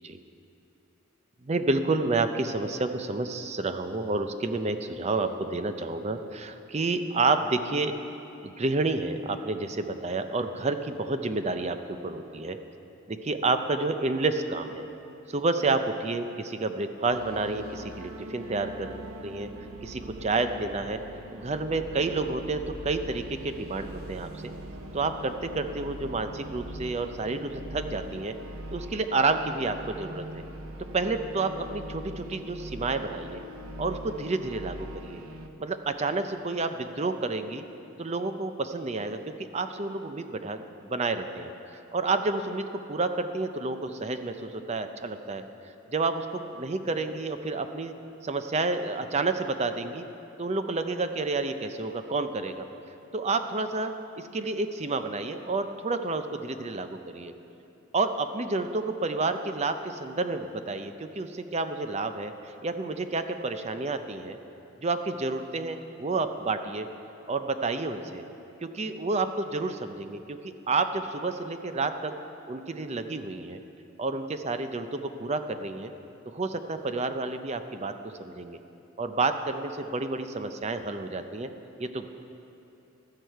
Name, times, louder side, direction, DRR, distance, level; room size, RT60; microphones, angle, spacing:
voice 1, 1.4-7.9 8.4-12.6 13.1-14.9 15.3-19.5 19.8-21.0 21.3-24.5 24.9-28.3 28.7-30.4 30.9-33.4 33.8-35.2 35.6-37.6 38.0-41.5 41.9-45.4 45.9-47.9 48.2-50.0 50.4-52.7 53.1-57.3 57.9-62.3 62.6-64.4 64.8-66.9 67.3-68.2 68.6-72.1 72.5-73.6 74.0-75.9 76.3-77.9 78.2-78.6 79.0-81.5 81.8-82.1, right 3 dB, 30° right, 8 dB, 0.5 m, -30 dB
sound 1, 17.1-35.5, equal, 80° right, 0.8 m, -42 dB
15.5 x 11.5 x 4.6 m, 2.9 s
head